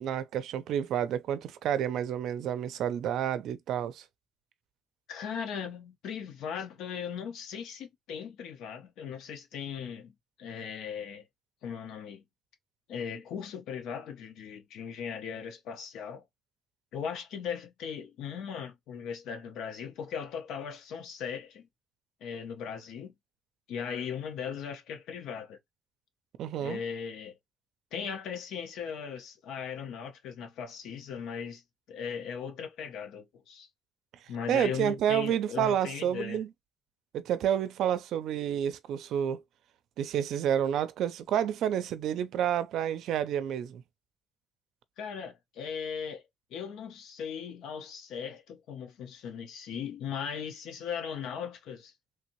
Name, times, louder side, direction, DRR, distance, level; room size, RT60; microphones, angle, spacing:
voice 1, 0.0-4.0 26.4-26.8 34.5-36.5 37.1-39.4 40.0-43.8, right 9 dB, 80° right, 0.4 m, -29 dB
voice 2, 5.1-10.1 10.4-11.2 11.6-12.2 12.9-16.2 16.9-21.7 22.2-23.1 23.7-25.6 26.5-27.3 27.9-31.6 31.9-33.7 34.3-36.4 45.0-46.2 46.5-51.9, left 7 dB, 90° left, 0.9 m, -38 dB
3.2 x 2.7 x 3.0 m
cardioid pair, 145°, 0 cm